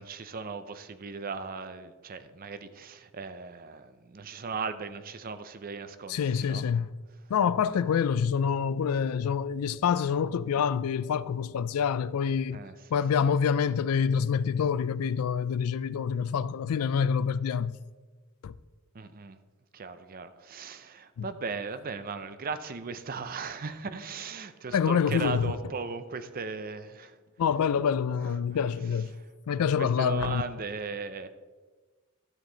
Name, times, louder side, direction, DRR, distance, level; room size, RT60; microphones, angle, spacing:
voice 1, 0.0-6.7 7.6-7.8 12.5-12.8 18.9-19.4 19.7-27.2 28.2-28.3 29.6-31.3, right 4 dB, 40° right, 0.5 m, -37 dB
voice 2, 6.1-6.9 7.3-12.6 12.9-17.8 18.4-18.5 21.2-21.3 24.7-25.6 27.4-29.1 29.5-30.4, left 7 dB, 90° left, 0.4 m, -26 dB
12.5 x 7.4 x 3.9 m
head